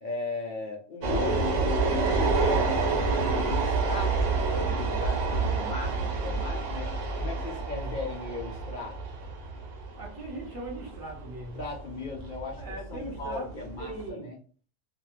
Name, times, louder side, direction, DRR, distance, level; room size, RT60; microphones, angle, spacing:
voice 1, 0.0-1.5 2.1-6.9 7.2-9.0 11.6-12.6 12.9-14.4, left 3 dB, 55° left, 0 dB, 0.6 m, -37 dB
sound 1, 1.0-14.1, right 3 dB, 75° right, 1.0 m, -28 dB
voice 2, 10.0-11.6 12.6-13.5 13.8-14.3, right 2 dB, 20° right, -4 dB, 0.8 m, -39 dB
2.4 x 2.2 x 3.0 m, 0.41 s
omnidirectional pair, 1.2 m